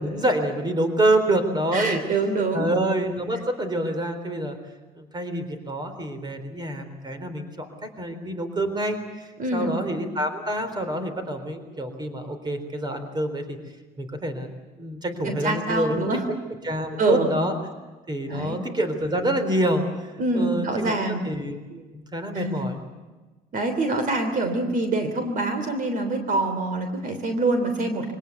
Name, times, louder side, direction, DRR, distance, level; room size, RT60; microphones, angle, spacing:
voice 1, 0.0-2.0 2.5-4.6 5.0-13.6 14.0-14.5 14.8-16.1 16.6-17.6 18.1-20.9 21.2-21.8 22.1-22.8, right 1 dB, 25° right, 8 dB, 3.9 m, -27 dB
voice 2, 1.7-2.7 9.4-9.8 15.2-16.2 17.0-17.3 18.3-18.6 20.2-21.2 22.3-22.6 23.5-28.1, right 2 dB, 55° right, 7 dB, 3.2 m, -25 dB
24.0 x 18.5 x 8.1 m, 1.2 s
cardioid pair, 110°, 17 cm